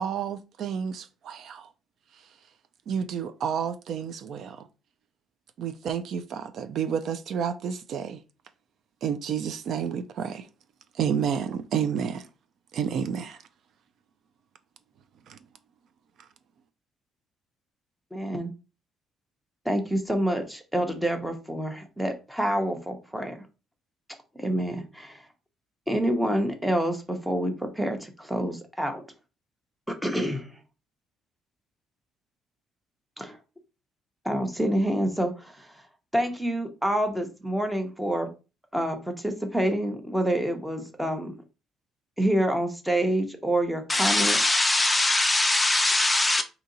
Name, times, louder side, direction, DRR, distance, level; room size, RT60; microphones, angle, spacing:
voice 1, 0.0-1.7 2.9-4.7 5.6-8.2 9.0-10.5 10.9-12.3 12.7-13.4 15.3-15.4, right 7 dB, 60° right, 0.4 m, -30 dB
voice 2, 18.1-18.5 19.6-23.4 24.3-25.2 25.9-29.0 29.9-30.6 33.2-33.4 34.2-35.7 36.1-38.3 38.7-41.3 42.2-44.4, right 1 dB, 5° right, 0.8 m, -27 dB
voice 3, 43.9-46.4, left 2 dB, 15° left, 0.4 m, -22 dB
4.2 x 2.8 x 3.9 m
cardioid pair, 140°, 0 cm